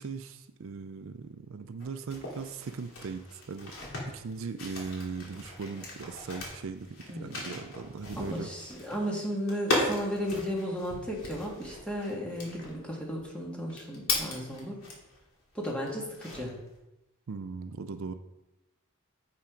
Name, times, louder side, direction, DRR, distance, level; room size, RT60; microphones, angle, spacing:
voice 1, 0.0-3.8 4.1-8.5 17.3-18.1, right 5 dB, 65° right, 9 dB, 0.5 m, -39 dB
sound 1, 1.8-15.2 15.6-16.7, left 2 dB, 80° left, 2.5 m, -37 dB
voice 2, 7.1-7.5 8.2-14.8 15.5-16.6, equal, 5° left, -2 dB, 1.8 m, -34 dB
7.7 x 5.7 x 5.1 m, 0.94 s
head